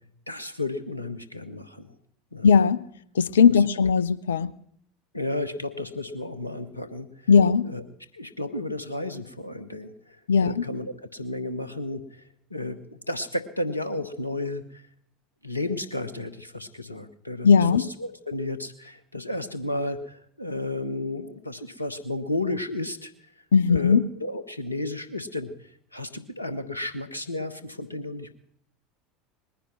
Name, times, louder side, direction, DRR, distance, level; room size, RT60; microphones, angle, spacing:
voice 1, 0.3-2.0 2.3-2.5 5.1-7.1 7.6-7.8 8.1-10.2 10.4-12.2 12.5-14.8 15.4-23.1 23.7-25.5 25.9-28.3, left 2 dB, 90° left, 1.1 m, -33 dB
voice 2, 2.4-2.8 3.2-4.5 7.3-7.7 10.3-10.6 17.4-17.8 23.5-24.0, left 6 dB, 75° left, 0.6 m, -18 dB
20.5 x 10.0 x 5.9 m
figure-of-eight pair, 75°, 0 cm